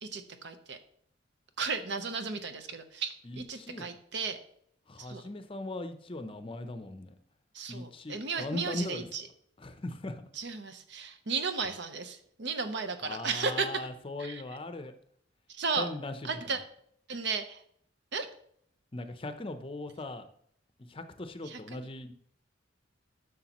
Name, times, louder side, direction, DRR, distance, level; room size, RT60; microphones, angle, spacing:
voice 1, 0.0-0.8 1.6-4.4 5.1-5.2 7.5-9.2 10.4-13.9 14.2-14.4 15.5-15.9 16.2-16.6 17.1-17.6 18.1-18.3 21.5-21.8, right 5 dB, 60° right, 9 dB, 0.8 m, -34 dB
voice 2, 3.2-3.9 4.9-7.1 7.7-9.1 9.6-10.3 13.0-14.9 15.8-16.6 18.9-20.3 20.9-22.1, left 2 dB, 25° left, 9 dB, 0.6 m, -39 dB
11.0 x 6.5 x 3.0 m, 0.65 s
head